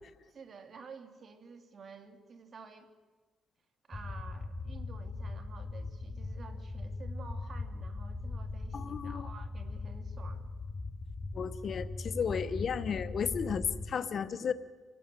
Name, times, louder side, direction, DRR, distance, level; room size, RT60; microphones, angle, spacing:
voice 1, 0.2-2.9 3.9-10.5, right 5 dB, 45° right, 7 dB, 2.5 m, -51 dB
sound 1, 3.9-13.9, left 3 dB, 20° left, 1.1 m, -40 dB
voice 2, 8.7-9.3 11.3-14.5, left 6 dB, 50° left, 13 dB, 1.0 m, -34 dB
25.5 x 18.5 x 7.6 m, 1.3 s
cardioid pair, 90°, 0 cm